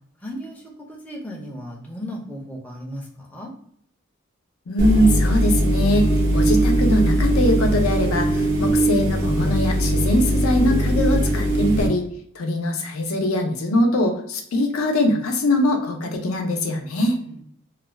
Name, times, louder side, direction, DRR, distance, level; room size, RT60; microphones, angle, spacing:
voice 1, 0.2-3.5 16.8-17.4, equal, 5° left, -2 dB, 0.5 m, -36 dB
voice 2, 4.7-6.1 6.3-12.0 12.4-17.2, left 1 dB, 90° left, 3 dB, 0.6 m, -22 dB
sound 1, 4.8-11.9, right 1 dB, 55° right, 0.7 m, -20 dB
2.4 x 2.2 x 3.2 m, 0.65 s
head